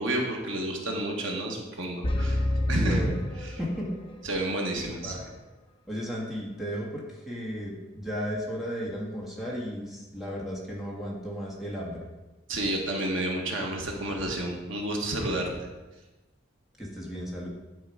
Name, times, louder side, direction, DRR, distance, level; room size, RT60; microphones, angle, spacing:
voice 1, 0.0-2.4 2.7-3.0 3.4-3.6 4.2-5.2 12.5-15.5, right 1 dB, 80° right, 0 dB, 1.4 m, -30 dB
sound 1, 2.0-4.2, left 1 dB, 30° left, 0.7 m, -28 dB
voice 2, 2.8-3.2 3.6-3.9 4.8-5.3 5.9-12.0 16.8-17.5, equal, ahead, -4 dB, 1.7 m, -34 dB
9.7 x 4.7 x 4.8 m, 1.1 s
head